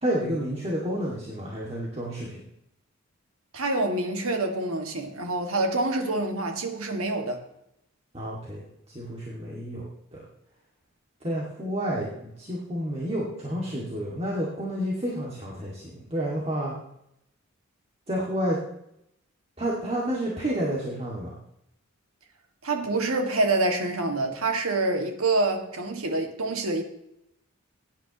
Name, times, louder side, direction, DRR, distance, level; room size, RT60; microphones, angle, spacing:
voice 1, 0.0-2.4 8.1-8.6 8.9-9.9 11.2-16.8 18.1-18.6 19.6-21.3, equal, 30° right, 2.3 m, -30 dB
voice 2, 3.5-7.4 22.6-26.8, right 2 dB, 85° right, 2.1 m, -26 dB
17.0 x 10.0 x 3.1 m
head